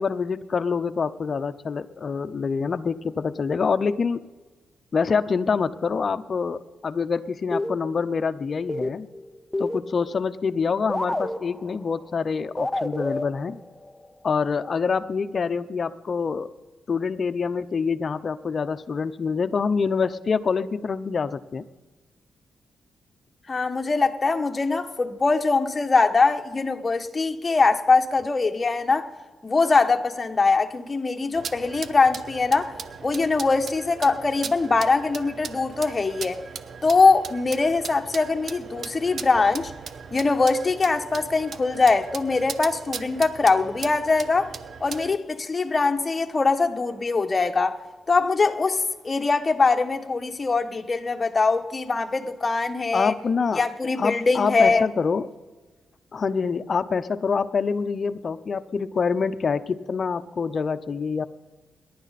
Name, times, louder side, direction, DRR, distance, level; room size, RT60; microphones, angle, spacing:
voice 1, 0.0-4.2 4.9-9.1 9.6-13.6 14.2-16.5 16.9-21.6 52.9-53.6 54.0-55.3 56.1-61.3, left 5 dB, 50° left, 0.8 m, -26 dB
sound 1, 7.5-8.2 8.5-10.3 10.6-10.7 10.9-12.0 12.6-14.1, left 1 dB, 10° left, 0.8 m, -30 dB
voice 2, 23.5-29.1 29.4-32.7 33.0-36.4 36.8-39.7 40.1-44.5 44.8-47.8 48.1-53.1 53.6-54.9, left 4 dB, 35° left, 1.3 m, -22 dB
sound 2, 31.3-45.2, right 6 dB, 65° right, 0.8 m, -38 dB
28.5 x 11.5 x 4.2 m
cardioid pair, 75°, 0 cm